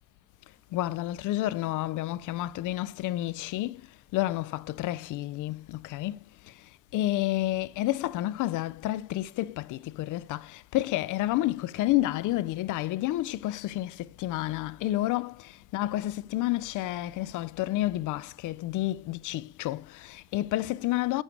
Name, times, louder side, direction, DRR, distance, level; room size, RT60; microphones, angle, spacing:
voice 1, 0.7-3.8 4.1-6.2 6.9-21.2, left 16 dB, 85° left, 0.5 m, -30 dB
8.1 x 7.1 x 2.9 m
cardioid pair, 90°, 30 cm